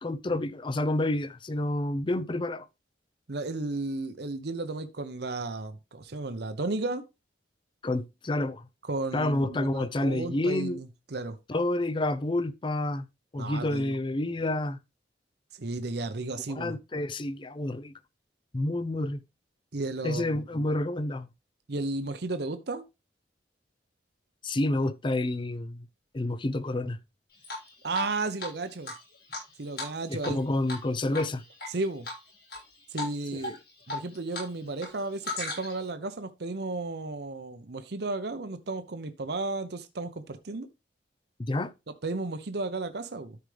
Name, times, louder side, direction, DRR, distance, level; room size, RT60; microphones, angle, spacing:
voice 1, 0.0-2.7 7.8-8.7 9.1-10.8 11.5-13.1 13.3-14.8 16.5-17.9 18.5-19.2 20.0-21.3 24.4-25.9 26.1-27.0 30.1-31.4 41.4-41.7, left 1 dB, 30° left, 0.5 m, -29 dB
voice 2, 3.3-7.0 8.9-11.4 13.4-14.0 15.5-16.8 19.7-20.3 21.7-22.9 27.8-28.9 29.6-30.4 31.7-32.1 32.9-33.6 33.9-40.7 42.0-43.4, right 2 dB, 65° right, 0.8 m, -33 dB
Drip, 27.4-28.1 28.4-28.5 28.8-30.4 30.7-30.9 31.1-31.7 32.0-32.6 33.0-33.1 33.4-34.5 34.7-35.9, left 2 dB, 60° left, 6.3 m, -36 dB
13.0 x 4.9 x 3.3 m
head